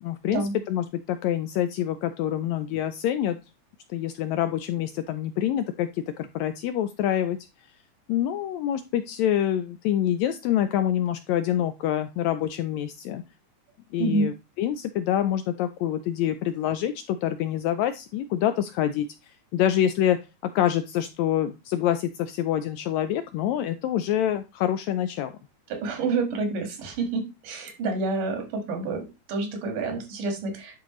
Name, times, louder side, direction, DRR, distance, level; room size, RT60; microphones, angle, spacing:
voice 1, 0.0-0.4 0.7-3.4 3.9-7.4 8.1-13.2 13.9-20.2 20.4-25.3, left 11 dB, 85° left, 10 dB, 1.6 m, -26 dB
voice 2, 14.0-14.3 25.7-30.8, right 3 dB, 90° right, 4 dB, 3.3 m, -28 dB
10.5 x 4.4 x 3.0 m, 0.27 s
omnidirectional pair, 3.6 m